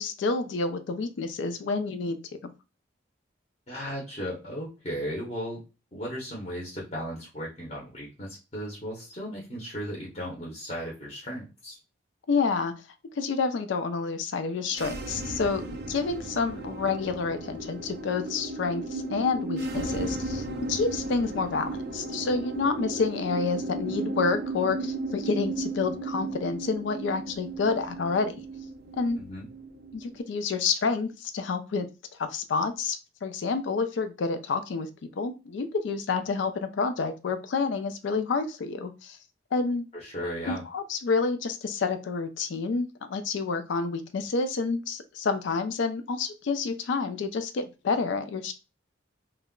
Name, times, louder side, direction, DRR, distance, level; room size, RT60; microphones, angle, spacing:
voice 1, 0.0-2.5 12.3-12.7 13.2-28.3 28.9-29.2 29.9-31.9 32.2-34.9 35.2-39.2 39.5-39.9 40.5-48.5, left 4 dB, 70° left, 8 dB, 0.4 m, -29 dB
voice 2, 3.7-5.6 5.9-11.8 29.2-29.5 40.0-40.6, equal, 35° left, -3 dB, 0.7 m, -36 dB
sound 1, 14.6-30.2, right 2 dB, 50° right, 0.4 m, -35 dB
2.2 x 2.0 x 3.6 m, 0.29 s
head